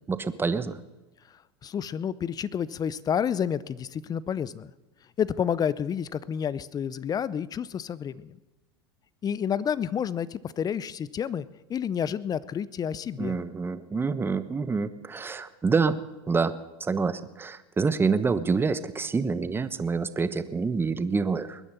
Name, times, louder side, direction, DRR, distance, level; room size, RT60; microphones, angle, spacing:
voice 1, 0.1-0.8 13.2-16.0 16.3-21.6, right 4 dB, 15° right, 13 dB, 1.0 m, -27 dB
voice 2, 1.6-4.7 5.2-8.4 9.2-13.4, left 8 dB, 30° left, 19 dB, 0.6 m, -30 dB
21.0 x 9.9 x 6.9 m, 1.1 s
hypercardioid pair, 95°, 14 cm